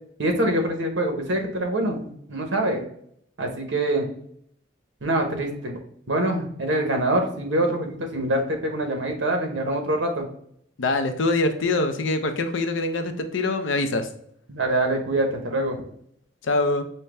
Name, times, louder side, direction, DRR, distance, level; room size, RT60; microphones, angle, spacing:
voice 1, 0.2-2.8 3.4-4.1 5.0-5.8 6.1-10.2 14.5-15.8, right 1 dB, 70° right, 3 dB, 0.9 m, -25 dB
voice 2, 10.8-14.1 16.4-16.8, left 2 dB, 75° left, 8 dB, 0.5 m, -24 dB
5.6 x 2.1 x 3.3 m, 0.68 s
head